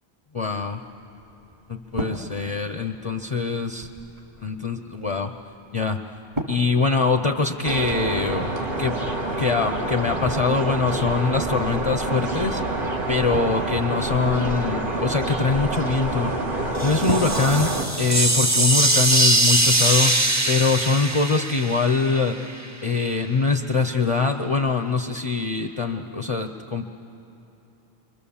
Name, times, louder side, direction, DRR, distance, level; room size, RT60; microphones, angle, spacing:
voice 1, 0.3-0.8 1.7-3.9 4.4-5.3 5.7-6.0 6.5-8.5 8.8-9.0 9.4-12.6 13.1-16.3 16.8-17.7 18.0-20.2 20.5-22.4 22.8-26.8, left 4 dB, 35° left, 6 dB, 0.7 m, -23 dB
sound 1, 0.6-18.6, equal, 40° right, 2.8 m, -39 dB
sound 2, 7.6-17.8, right 2 dB, 55° right, 1.7 m, -27 dB
sound 3, 16.8-22.7, right 2 dB, 20° right, 0.6 m, -22 dB
29.5 x 25.0 x 7.1 m, 2.9 s
omnidirectional pair, 1.0 m